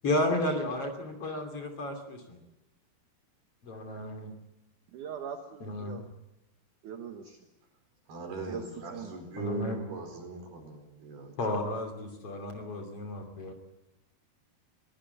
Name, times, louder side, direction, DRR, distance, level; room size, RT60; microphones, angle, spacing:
voice 1, 0.0-2.4 3.6-4.3 5.6-6.0 9.4-9.8 11.4-13.5, left 1 dB, 40° left, 4 dB, 3.6 m, -32 dB
voice 2, 4.9-6.0 6.8-7.4 8.5-9.1, right 7 dB, 65° right, 4 dB, 2.6 m, -41 dB
voice 3, 8.1-11.3, right 2 dB, 85° right, 4 dB, 6.5 m, -40 dB
22.5 x 18.5 x 8.2 m, 0.96 s
omnidirectional pair, 4.4 m